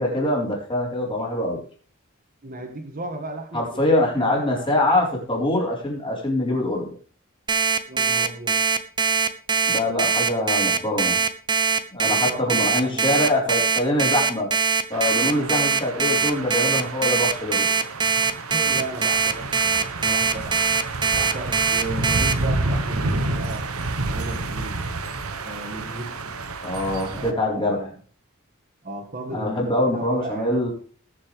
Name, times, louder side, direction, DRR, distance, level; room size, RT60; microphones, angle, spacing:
voice 1, 0.0-1.6 3.5-6.9 9.7-11.2 11.9-14.5 14.9-17.7 26.6-27.9 29.3-30.7, left 1 dB, 25° left, -2 dB, 4.4 m, -24 dB
voice 2, 2.4-4.9 7.9-8.6 12.0-13.3 18.5-20.6 21.1-23.7 24.0-24.8 25.4-26.4 27.1-27.9 28.8-30.6, right 1 dB, 45° right, 4 dB, 2.0 m, -35 dB
Alarm, 7.5-22.3, right 5 dB, 20° right, 0.9 m, -21 dB
sound 1, 14.9-27.3, right 2 dB, 90° right, 1.3 m, -30 dB
20.0 x 7.3 x 3.4 m, 0.42 s
head